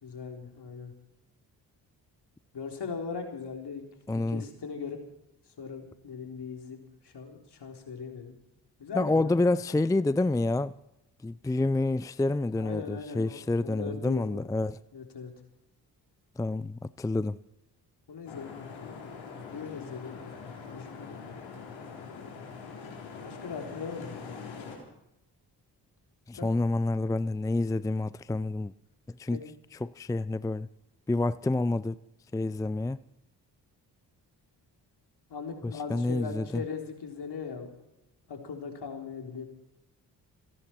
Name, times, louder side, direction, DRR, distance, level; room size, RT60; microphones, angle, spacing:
voice 1, 0.0-0.9 2.5-3.8 4.3-5.0 5.6-6.8 7.0-8.3 8.8-9.3 12.6-14.5 14.9-15.3 18.1-18.9 19.4-20.2 20.7-21.1 23.2-24.6 26.3-26.5 29.3-29.5 35.3-37.7 38.3-39.4, left 5 dB, 60° left, 3.9 m, -39 dB
voice 2, 4.1-4.4 8.9-10.7 11.2-14.8 16.4-17.4 26.3-28.7 29.2-29.4 29.8-30.7 31.1-32.0 32.3-33.0 35.6-36.6, left 2 dB, 10° left, 0.5 m, -28 dB
sound 1, 18.3-24.8, left 5 dB, 80° left, 4.2 m, -43 dB
29.5 x 11.0 x 4.5 m
hypercardioid pair, 40°, 45 cm